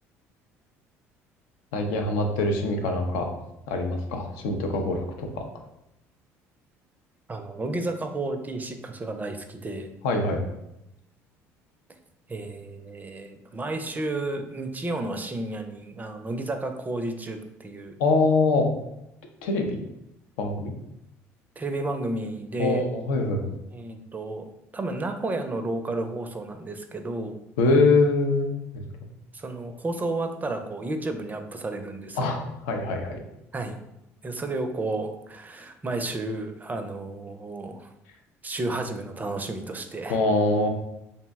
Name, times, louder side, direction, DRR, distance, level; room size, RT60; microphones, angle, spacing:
voice 1, 1.7-3.3 3.7-5.4 10.0-10.4 18.0-18.7 19.4-19.8 20.4-20.7 22.6-23.5 27.6-28.8 32.2-33.2 40.1-40.7, left 3 dB, 80° left, 4 dB, 0.4 m, -24 dB
voice 2, 7.3-9.9 12.3-18.0 21.6-22.8 23.7-24.5 24.7-27.4 29.3-32.2 33.5-33.8 34.2-37.9 38.4-40.2, right 2 dB, 25° right, 7 dB, 0.4 m, -32 dB
2.6 x 2.0 x 3.4 m, 0.85 s
hypercardioid pair, 70°, 7 cm